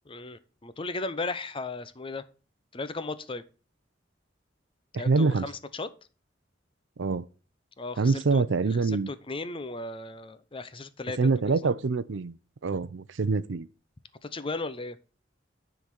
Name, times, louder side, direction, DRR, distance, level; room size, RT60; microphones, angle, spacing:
voice 1, 0.1-2.2 2.7-3.4 5.0-5.9 7.8-8.4 8.8-11.7 14.2-15.0, left 3 dB, 30° left, 0.6 m, -36 dB
voice 2, 4.9-5.5 7.0-7.2 8.0-9.1 11.2-12.4 12.6-13.7, right 4 dB, 75° right, 0.5 m, -25 dB
10.0 x 4.0 x 5.9 m
head